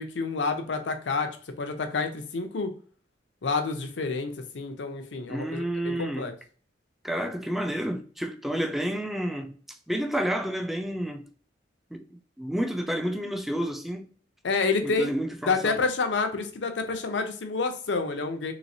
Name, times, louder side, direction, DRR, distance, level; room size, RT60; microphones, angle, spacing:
voice 1, 0.0-2.7 3.4-6.3 14.4-15.1 15.5-18.5, left 4 dB, 85° left, 0.6 m, -28 dB
voice 2, 5.3-6.3 7.0-11.3 11.9-12.0 12.4-14.1 14.8-15.8, equal, ahead, 0.3 m, -30 dB
3.2 x 3.0 x 2.6 m
head